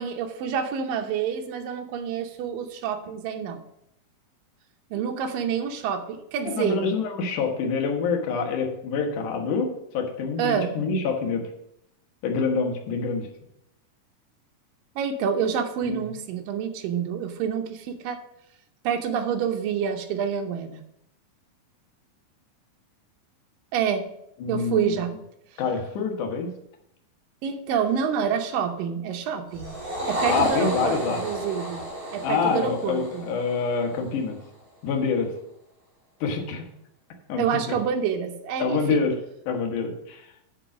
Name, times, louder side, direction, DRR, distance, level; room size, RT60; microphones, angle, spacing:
voice 1, 0.0-3.6 4.9-6.8 10.4-10.8 15.0-18.2 18.8-20.8 23.7-24.0 24.5-25.1 27.4-29.8 30.1-31.8 32.1-33.3 37.4-39.0, right 7 dB, 75° right, 5 dB, 2.4 m, -27 dB
voice 2, 6.4-11.4 12.2-13.3 15.8-16.0 24.4-24.9 25.6-26.5 30.3-31.2 32.2-34.4 34.8-35.3 36.2-36.7 37.3-37.8 38.6-39.2 39.5-40.3, left 5 dB, 65° left, 2 dB, 2.5 m, -26 dB
sound 1, 29.5-34.1, right 1 dB, 45° right, 5.1 m, -31 dB
9.0 x 5.5 x 6.0 m, 0.77 s
omnidirectional pair, 4.3 m